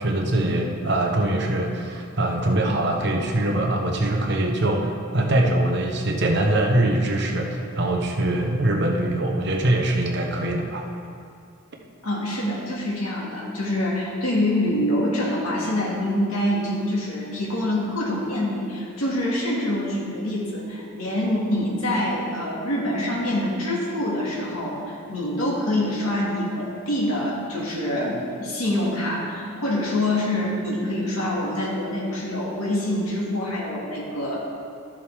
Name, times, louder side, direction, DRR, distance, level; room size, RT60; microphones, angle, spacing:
voice 1, 0.0-10.9, right 1 dB, 50° right, 1 dB, 1.0 m, -23 dB
voice 2, 12.0-34.4, left 1 dB, 85° left, -5 dB, 2.1 m, -25 dB
12.5 x 7.6 x 3.6 m, 2.4 s
head